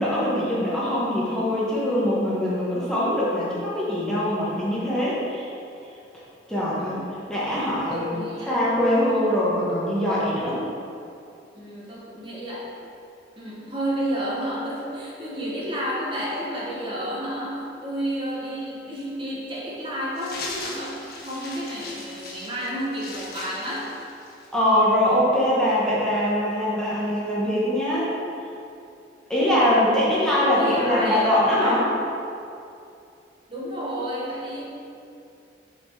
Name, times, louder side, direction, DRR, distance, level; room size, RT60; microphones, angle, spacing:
voice 1, 0.0-5.4 6.5-7.0 7.3-8.2 8.5-10.6 24.5-28.1 29.3-31.8, left 1 dB, 5° left, -9 dB, 1.1 m, -22 dB
voice 2, 6.8-7.1 7.9-8.6 11.5-12.7 13.4-24.0 30.6-31.9 33.5-34.6, equal, 30° right, -6 dB, 1.2 m, -31 dB
sound 1, 20.2-24.6, left 2 dB, 55° left, 1.3 m, -38 dB
6.9 x 4.3 x 4.6 m, 2.6 s
head